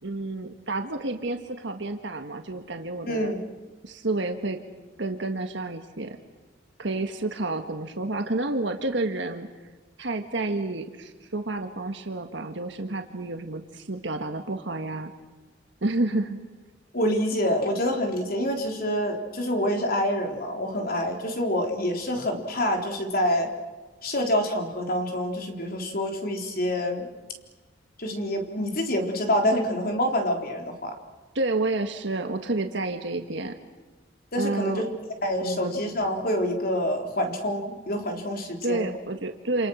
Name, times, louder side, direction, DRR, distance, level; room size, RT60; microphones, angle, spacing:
voice 1, 0.0-3.3 3.8-4.6 5.0-6.2 6.8-9.5 10.0-15.1 15.8-16.4 31.3-33.6 34.4-34.8 35.4-35.8 38.6-39.7, right 2 dB, 70° right, 5 dB, 1.7 m, -30 dB
voice 2, 3.1-3.4 16.9-23.5 24.0-27.1 28.0-30.9 34.3-34.9 35.2-38.9, equal, 55° left, 3 dB, 3.8 m, -27 dB
28.5 x 28.0 x 6.3 m, 1.3 s
head